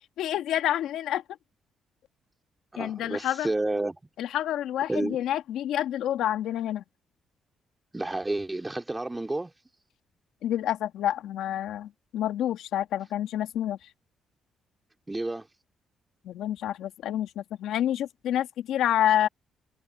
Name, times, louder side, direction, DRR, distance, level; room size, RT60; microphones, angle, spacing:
voice 1, 0.2-1.2 2.8-3.5 4.2-6.8 10.4-13.9 16.2-19.3, left 11 dB, 80° left, 2.2 m, -28 dB
voice 2, 2.7-4.0 4.9-5.2 7.9-9.5 15.1-15.5, right 2 dB, 15° right, 3.7 m, -30 dB
cardioid pair, 90°, 0 cm